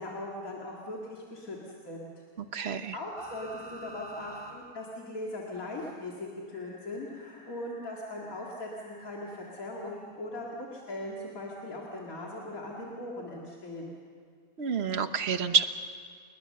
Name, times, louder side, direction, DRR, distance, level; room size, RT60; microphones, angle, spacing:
voice 1, 0.0-1.6 1.8-2.1 2.9-13.9, left 1 dB, 80° left, -3 dB, 2.8 m, -39 dB
voice 2, 2.4-3.0 14.6-15.6, right 6 dB, 50° right, 9 dB, 1.2 m, -28 dB
sound 1, 3.2-4.6 4.9-5.0 6.5-9.7 11.3-11.4, right 2 dB, 20° left, 3.5 m, -50 dB
29.5 x 20.0 x 6.7 m, 2.2 s
omnidirectional pair, 1.5 m